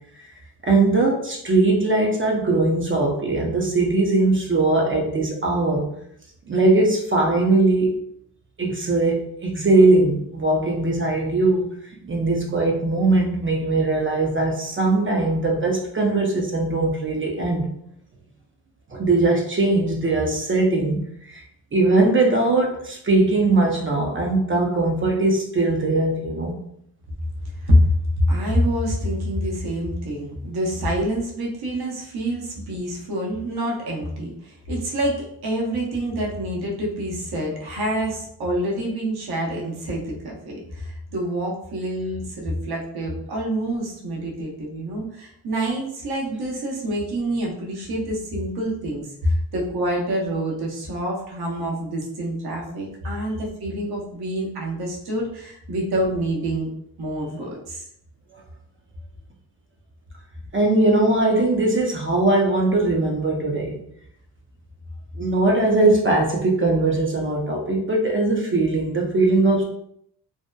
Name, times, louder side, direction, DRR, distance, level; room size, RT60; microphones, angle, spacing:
voice 1, 0.6-5.9 6.5-8.0 8.6-17.7 18.9-21.4 21.7-26.6 60.5-63.8 65.2-69.6, right 2 dB, 30° right, 0 dB, 0.5 m, -20 dB
voice 2, 28.2-56.7 57.0-57.9, equal, 70° right, -2 dB, 0.8 m, -26 dB
2.7 x 2.0 x 2.2 m, 0.71 s
cardioid pair, 65°, 39 cm